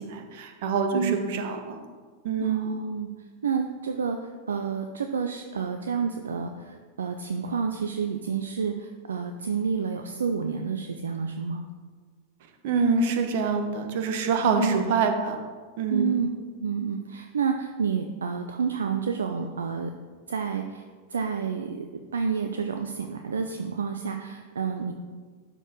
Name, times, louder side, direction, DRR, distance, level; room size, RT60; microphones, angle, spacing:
voice 1, 0.0-1.8 2.2-2.8 12.6-15.4 15.8-16.2, right 5 dB, 50° right, 6 dB, 1.1 m, -26 dB
voice 2, 2.4-3.1 3.4-4.2 4.5-11.6 14.6-14.8 15.9-16.3 16.6-19.9 20.3-20.8 21.1-24.9, right 6 dB, 70° right, 6 dB, 0.5 m, -29 dB
11.5 x 4.5 x 5.2 m, 1.5 s
figure-of-eight pair, 90°, 0 cm